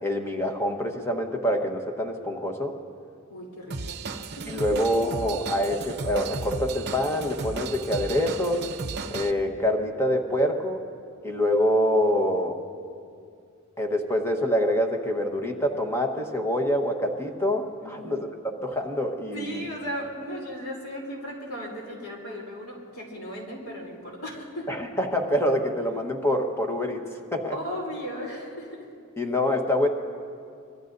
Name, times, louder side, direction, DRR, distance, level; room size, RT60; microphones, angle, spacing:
voice 1, 0.0-2.7 4.5-8.6 9.1-10.8 11.2-12.6 13.8-18.3 18.6-19.7 24.7-27.0 27.3-27.6 29.2-29.9, equal, 10° left, 3 dB, 1.2 m, -26 dB
voice 2, 3.3-4.0 4.4-4.8 17.8-18.2 19.3-24.7 27.5-28.9, equal, 70° left, -2 dB, 3.3 m, -36 dB
Drum kit / Drum, 3.7-9.3, right 3 dB, 50° right, 0.8 m, -34 dB
24.5 x 21.0 x 2.7 m, 2.3 s
head